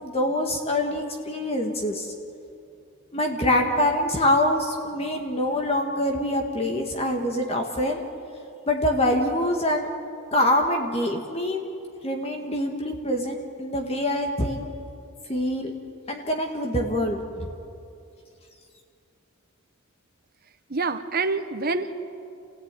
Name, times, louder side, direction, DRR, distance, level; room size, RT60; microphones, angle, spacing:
voice 1, 0.0-2.1 3.1-8.0 8.7-9.9 10.3-11.7 12.0-14.7 15.3-15.7 16.1-17.5, left 1 dB, 25° left, 2 dB, 1.7 m, -25 dB
voice 2, 20.7-22.0, right 3 dB, 45° right, 8 dB, 1.2 m, -26 dB
28.5 x 16.5 x 9.1 m, 2.6 s
head